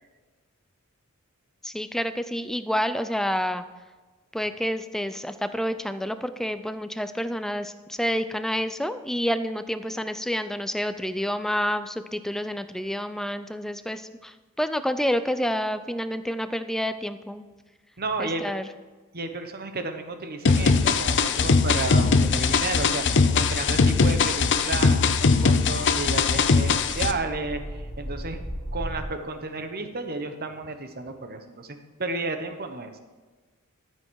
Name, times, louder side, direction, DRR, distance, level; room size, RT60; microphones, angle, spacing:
voice 1, 1.6-3.6 4.3-17.5 18.2-18.7, equal, ahead, 11 dB, 0.4 m, -29 dB
voice 2, 18.0-18.4 19.1-28.4 28.7-32.9, right 3 dB, 45° right, 7 dB, 1.1 m, -32 dB
sound 1, 20.5-27.1, left 4 dB, 55° left, 0.6 m, -21 dB
sound 2, 26.4-29.0, equal, 35° left, 2.9 m, -40 dB
13.5 x 7.8 x 4.7 m, 1.3 s
head